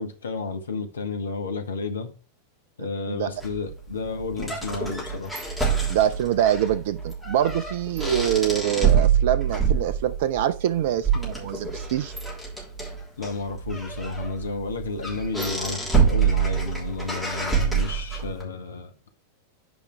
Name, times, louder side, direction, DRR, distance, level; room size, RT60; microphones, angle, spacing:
voice 1, 0.0-2.1 2.8-5.3 13.2-18.9, left 4 dB, 70° left, 1.1 m, -32 dB
sound 1, 3.4-18.4, right 6 dB, ahead, 3.4 m, -26 dB
voice 2, 5.9-12.1, right 11 dB, 55° right, 0.4 m, -24 dB
9.2 x 5.0 x 3.3 m
figure-of-eight pair, 90°, 0 cm